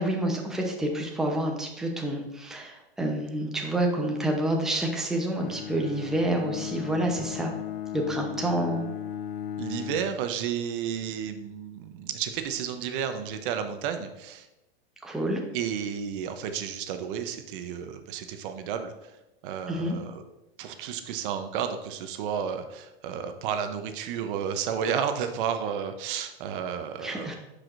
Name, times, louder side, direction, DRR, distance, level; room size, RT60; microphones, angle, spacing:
voice 1, 0.0-7.5 7.9-8.9 15.0-15.4 19.7-20.0 27.0-27.3, right 1 dB, ahead, 1 dB, 0.7 m, -28 dB
Bowed string instrument, 5.3-10.2, left 10 dB, 60° left, 0.6 m, -36 dB
voice 2, 9.6-14.5 15.5-19.1 19.4-20.2 20.6-27.3, right 8 dB, 55° right, 7 dB, 0.8 m, -32 dB
10.0 x 4.9 x 2.5 m, 0.95 s
hypercardioid pair, 125°, 31 cm